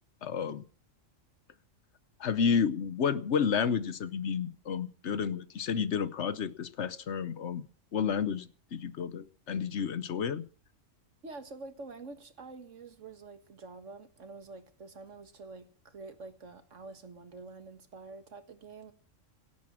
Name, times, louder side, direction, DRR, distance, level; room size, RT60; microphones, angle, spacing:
voice 1, 0.2-0.6 2.2-7.6 7.9-10.4, left 7 dB, 65° left, 1.1 m, -31 dB
voice 2, 11.2-18.9, right 3 dB, 70° right, 2.0 m, -47 dB
17.0 x 8.4 x 7.5 m
omnidirectional pair, 1.3 m